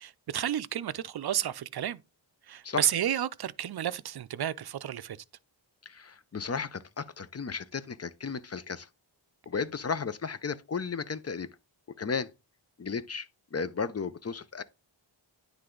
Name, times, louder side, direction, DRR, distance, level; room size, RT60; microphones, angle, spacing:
voice 1, 0.0-2.0 2.5-5.2, right 10 dB, 55° right, 0.5 m, -31 dB
voice 2, 5.9-8.9 9.5-11.5 12.0-12.3 12.8-14.6, left 5 dB, 35° left, 0.5 m, -34 dB
9.6 x 3.4 x 3.8 m
wide cardioid pair, 65°, 46 cm